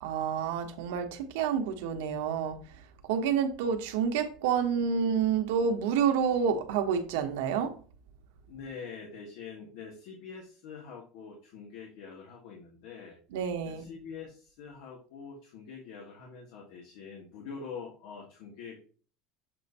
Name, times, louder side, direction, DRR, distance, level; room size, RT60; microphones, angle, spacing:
voice 1, 0.0-2.6 3.0-7.7 13.3-13.9, right 7 dB, 85° right, 1.1 m, -28 dB
voice 2, 8.5-13.2 13.6-18.8, left 5 dB, 65° left, 1.4 m, -45 dB
7.3 x 2.7 x 5.4 m
cardioid pair, 160°, 0 cm